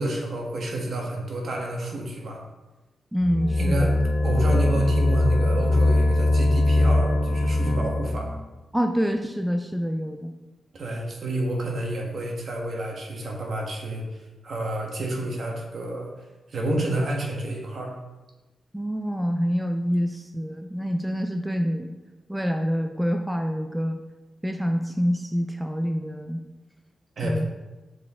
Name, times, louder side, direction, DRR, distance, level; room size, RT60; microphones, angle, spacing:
voice 1, 0.0-2.4 3.5-3.9 4.2-8.4 10.7-16.1 16.5-17.9 27.2-27.5, right 1 dB, 60° right, 0 dB, 1.4 m, -29 dB
voice 2, 3.1-3.9 8.7-10.3 18.7-21.9 22.3-24.0 24.4-26.4 27.2-27.5, equal, 5° right, 5 dB, 0.4 m, -26 dB
sound 1, 3.2-8.3, left 2 dB, 55° left, 0.6 m, -21 dB
6.5 x 4.6 x 3.6 m, 1.1 s
cardioid pair, 95°, 0 cm